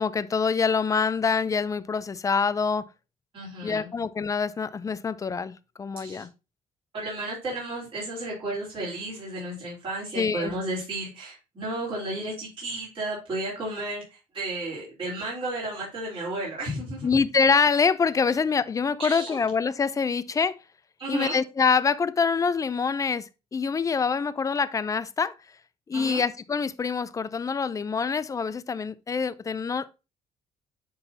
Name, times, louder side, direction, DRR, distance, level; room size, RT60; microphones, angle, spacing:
voice 1, 0.0-2.9 3.6-5.5 5.8-6.3 10.2-10.5 17.0-20.5 21.1-25.3 25.9-29.9, left 5 dB, 25° left, 0.4 m, -25 dB
voice 2, 3.3-3.9 6.0-6.3 6.9-17.1 19.0-19.4 21.0-21.4 25.9-26.2, right 2 dB, 40° right, 3.4 m, -33 dB
9.9 x 3.9 x 2.7 m
cardioid pair, 115°, 14 cm